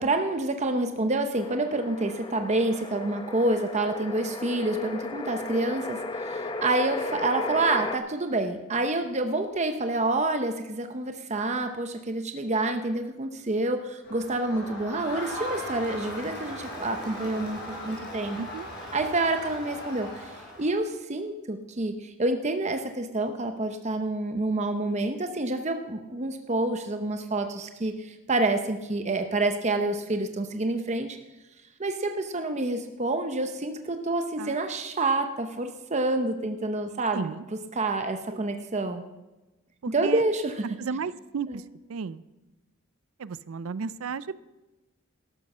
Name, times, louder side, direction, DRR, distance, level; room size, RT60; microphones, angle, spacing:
voice 1, 0.0-18.4 18.9-31.2 31.8-37.3 37.7-39.0 39.9-40.7 41.5-41.6, right 2 dB, 35° right, 6 dB, 0.8 m, -28 dB
sound 1, 1.3-8.0, left 2 dB, 25° left, 0.8 m, -35 dB
Crowd, 14.0-20.9, equal, 50° left, 5.3 m, -38 dB
voice 2, 18.4-18.7 34.4-34.6 37.1-37.4 38.3-38.4 39.8-40.2 40.8-41.6 41.9-42.2 43.2-44.3, right 5 dB, 80° right, 17 dB, 0.5 m, -34 dB
13.0 x 12.0 x 5.5 m, 1.1 s
head